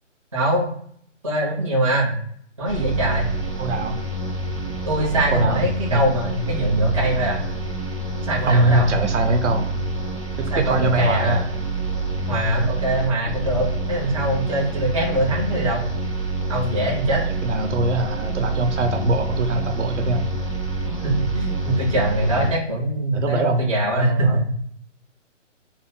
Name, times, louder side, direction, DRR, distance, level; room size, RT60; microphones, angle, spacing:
voice 1, 0.3-0.7 1.2-2.1 2.6-3.3 4.8-7.4 8.2-8.9 10.5-11.4 12.3-15.8 16.5-17.2 21.0-24.4, right 1 dB, 30° right, -4 dB, 0.5 m, -22 dB
sound 1, 2.7-22.5, right 2 dB, 30° left, 0.4 m, -27 dB
voice 2, 3.6-4.0 5.3-5.6 5.9-6.0 8.5-9.7 10.4-11.4 15.1-15.3 17.4-20.3 23.1-24.5, right 2 dB, 70° right, 6 dB, 0.8 m, -22 dB
2.5 x 2.1 x 3.3 m, 0.63 s
hypercardioid pair, 165°, 38 cm